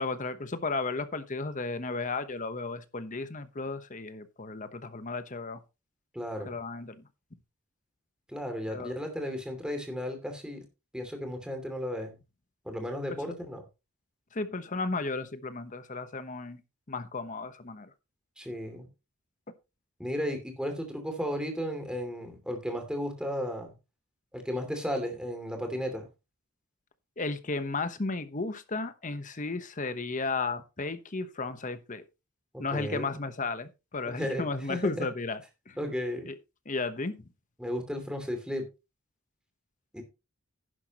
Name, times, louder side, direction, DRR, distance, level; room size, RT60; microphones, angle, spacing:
voice 1, 0.0-5.6 6.4-7.0 8.7-9.0 13.1-13.2 14.3-16.6 16.9-17.9 27.2-32.0 32.6-35.4 35.7-35.8 36.3-36.4 36.7-37.3, left 3 dB, 35° left, 1.0 m, -34 dB
voice 2, 6.1-6.6 8.3-10.6 10.9-12.2 12.6-13.6 18.4-18.9 20.0-23.7 24.3-26.1 32.5-33.2 34.0-35.1 35.8-36.3 37.6-38.6 39.9-40.0, equal, 5° right, 2.6 m, -34 dB
11.0 x 10.5 x 3.0 m
head